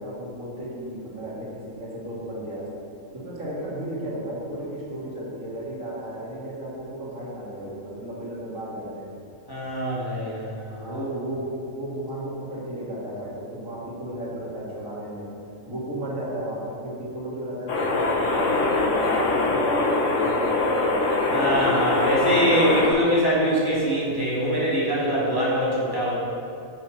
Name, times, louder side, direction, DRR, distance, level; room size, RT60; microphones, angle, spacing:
voice 1, 0.0-2.6 3.2-9.1 10.7-11.4 11.8-15.3 15.7-18.6 19.0-21.5, right 1 dB, 80° right, -6 dB, 2.6 m, -34 dB
voice 2, 9.5-11.1 21.3-26.2, equal, 15° left, -8 dB, 2.2 m, -23 dB
sound 1, 17.7-22.9, left 2 dB, 70° left, 1.5 m, -23 dB
8.2 x 6.8 x 5.7 m, 2.7 s
omnidirectional pair, 1.4 m